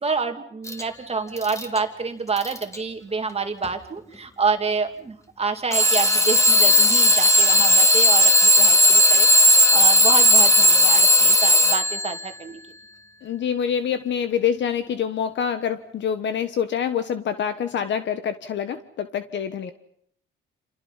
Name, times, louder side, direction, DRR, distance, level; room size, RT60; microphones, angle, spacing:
voice 1, 0.0-9.3 9.7-12.6, right 4 dB, 30° right, 5 dB, 2.3 m, -28 dB
Alarm / Clock, 0.7-0.8 1.4-1.8 2.4-2.8 3.6-3.7 5.7-12.1, left 1 dB, 15° left, 3.1 m, -16 dB
voice 2, 13.2-19.7, left 8 dB, 65° left, 10 dB, 1.4 m, -26 dB
28.5 x 28.0 x 5.7 m, 0.68 s
cardioid pair, 90°, 20 cm